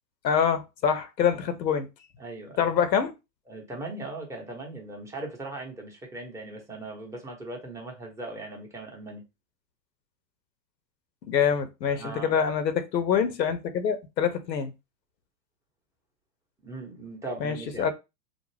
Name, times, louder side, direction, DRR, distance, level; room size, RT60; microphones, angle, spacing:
voice 1, 0.2-1.9 2.6-3.1 11.3-14.7 17.4-17.9, left 7 dB, 85° left, 0.8 m, -25 dB
voice 2, 2.2-2.7 3.5-9.2 11.9-12.3 16.6-17.9, right 2 dB, 5° right, 0.7 m, -39 dB
2.5 x 2.0 x 3.2 m
hypercardioid pair, 110°, 49 cm